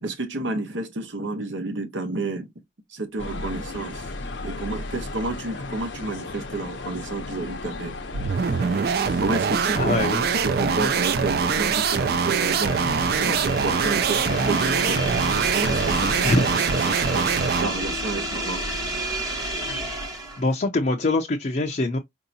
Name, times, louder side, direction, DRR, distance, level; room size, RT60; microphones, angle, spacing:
voice 1, 0.0-2.5 2.9-4.1 4.4-8.0 9.2-12.8 13.2-15.0 15.5-18.6, right 2 dB, 85° right, 1.0 m, -30 dB
sound 1, 3.2-16.2, left 2 dB, 75° left, 0.7 m, -35 dB
sound 2, 8.1-17.8, right 6 dB, 55° right, 0.4 m, -23 dB
sound 3, 9.0-20.5, right 1 dB, 20° right, 1.0 m, -32 dB
voice 2, 9.8-10.2 16.2-16.4 20.4-22.0, left 2 dB, 40° left, 0.5 m, -23 dB
4.5 x 2.7 x 2.6 m
head